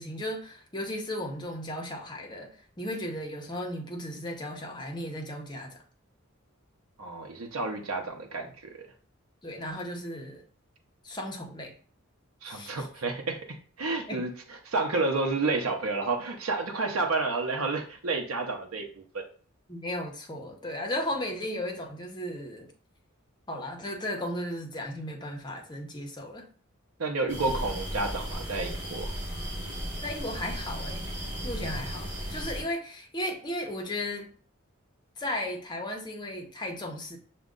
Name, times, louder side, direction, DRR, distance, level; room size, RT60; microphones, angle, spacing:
voice 1, 0.0-2.5 2.8-5.8 9.4-10.4 11.0-11.7 12.4-12.9 14.0-14.2 19.7-22.7 23.5-26.5 30.0-31.0 31.4-34.3 35.2-37.2, left 1 dB, 20° left, 2 dB, 0.7 m, -35 dB
voice 2, 7.0-8.8 12.4-13.4 13.8-19.2 27.0-29.1, right 3 dB, 80° right, 2 dB, 0.7 m, -30 dB
sound 1, 27.3-32.6, equal, 10° right, 1.6 m, -35 dB
6.2 x 2.2 x 3.7 m, 0.43 s
head